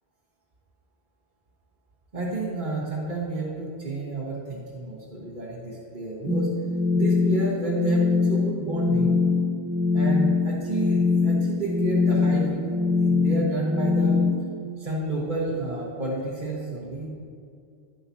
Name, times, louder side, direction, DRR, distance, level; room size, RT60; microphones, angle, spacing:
voice 1, 2.1-6.5 6.9-9.2 9.9-14.2 14.8-17.1, right 2 dB, 50° right, -7 dB, 1.6 m, -30 dB
sound 1, 6.3-14.3, left 4 dB, 5° left, 0.9 m, -23 dB
11.5 x 10.5 x 2.8 m, 2.3 s
omnidirectional pair, 1.0 m